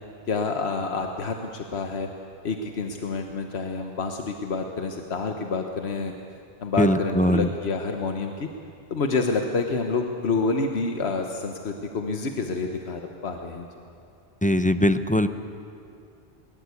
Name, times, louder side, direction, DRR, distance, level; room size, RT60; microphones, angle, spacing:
voice 1, 0.3-2.1 2.4-6.1 6.6-8.5 8.9-13.7, left 4 dB, 90° left, 4 dB, 1.4 m, -28 dB
voice 2, 6.8-7.5 14.4-15.3, left 1 dB, 10° left, 10 dB, 0.6 m, -21 dB
21.5 x 21.0 x 8.3 m, 2.5 s
omnidirectional pair, 1.0 m